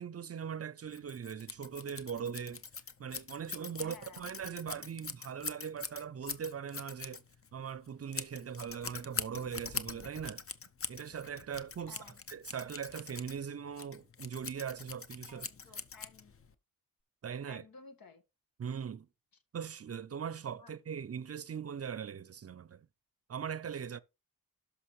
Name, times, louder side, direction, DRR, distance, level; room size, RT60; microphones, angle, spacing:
voice 1, 0.0-2.6 3.0-7.2 7.5-10.4 10.9-12.0 12.3-15.5 17.2-17.6 18.6-19.1 19.5-22.9 23.3-24.0, right 7 dB, 45° right, 0.5 m, -40 dB
Scissors, 0.9-16.5, left 5 dB, 40° left, 0.7 m, -43 dB
voice 2, 3.8-4.3 11.9-12.2 15.3-16.3 17.4-18.2 20.6-20.7, left 5 dB, 80° left, 1.7 m, -55 dB
11.5 x 5.9 x 3.2 m
wide cardioid pair, 105°, 35 cm